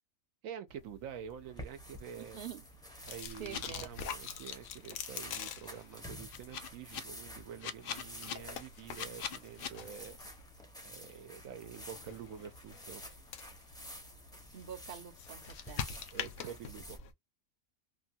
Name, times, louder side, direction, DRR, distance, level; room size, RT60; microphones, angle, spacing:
voice 1, 0.4-2.4 3.1-10.2 10.8-13.0 16.1-17.0, right 8 dB, 75° right, 1.0 m, -47 dB
sound 1, 0.7-17.1, left 7 dB, 80° left, 1.0 m, -47 dB
sound 2, 1.4-17.0, equal, 5° left, 0.6 m, -51 dB
voice 2, 2.2-2.6 3.4-3.9 14.5-15.8, right 9 dB, 55° right, 0.7 m, -46 dB
sound 3, 3.5-3.6 6.3-7.0 7.6-8.3 8.9-9.7, left 8 dB, 60° left, 0.5 m, -40 dB
3.1 x 2.2 x 2.6 m
omnidirectional pair, 1.4 m